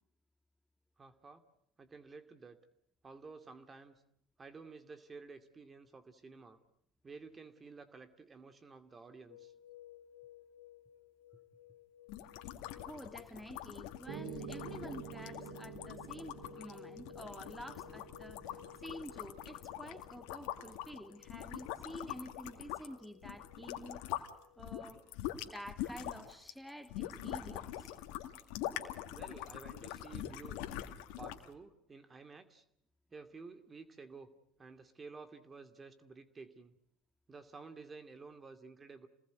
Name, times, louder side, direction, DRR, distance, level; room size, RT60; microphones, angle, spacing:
voice 1, 1.0-1.4 1.8-2.6 3.0-4.0 4.4-6.6 7.0-9.5 29.1-30.6 31.2-32.6 33.1-34.3 34.6-36.8 37.3-39.1, right 4 dB, 30° right, 10 dB, 2.4 m, -52 dB
sound 1, 9.3-24.8, left 13 dB, 90° left, 1.9 m, -58 dB
sound 2, 12.1-24.3 24.6-31.5, left 13 dB, 70° left, 2.3 m, -44 dB
voice 2, 12.8-24.0 24.6-25.0 25.4-27.9, equal, 5° right, 9 dB, 2.5 m, -49 dB
Piano, 14.1-22.1, right 7 dB, 75° right, 4.5 m, -50 dB
29.5 x 20.0 x 9.5 m, 0.73 s
hypercardioid pair, 75°, 0 cm